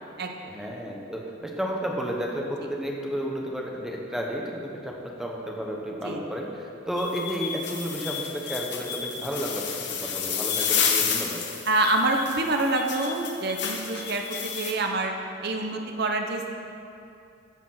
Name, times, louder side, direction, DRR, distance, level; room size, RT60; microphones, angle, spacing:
voice 1, 0.5-11.4, equal, ahead, -1 dB, 1.0 m, -32 dB
sound 1, 7.0-14.7, left 7 dB, 55° left, 1.0 m, -30 dB
voice 2, 11.7-15.1 15.4-16.5, right 2 dB, 50° right, 3 dB, 0.8 m, -26 dB
13.5 x 5.0 x 5.8 m, 2.6 s
head